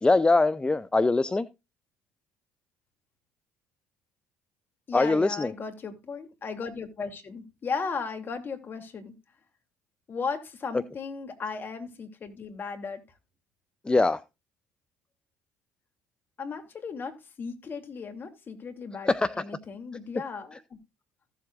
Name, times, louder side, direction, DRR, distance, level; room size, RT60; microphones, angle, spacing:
voice 1, 0.0-1.5 4.9-5.5 13.9-14.2 19.1-19.3, left 3 dB, 20° left, 0.6 m, -22 dB
voice 2, 4.9-9.1 10.1-13.0 16.4-20.6, left 5 dB, 40° left, 2.7 m, -36 dB
15.5 x 7.6 x 2.5 m
hypercardioid pair, 65°, 5 cm